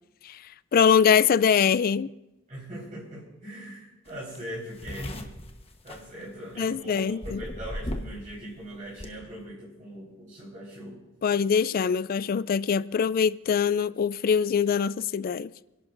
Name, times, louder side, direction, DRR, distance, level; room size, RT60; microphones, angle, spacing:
voice 1, 0.7-2.1 6.6-7.4 11.2-15.5, left 7 dB, 45° left, 0.3 m, -23 dB
voice 2, 2.5-5.3 5.8-11.0, equal, 40° right, 4.5 m, -41 dB
sound 1, 4.1-4.2 4.4-6.7 7.2-8.3 8.5-9.1, left 1 dB, 30° left, 1.1 m, -36 dB
29.5 x 11.5 x 2.6 m
head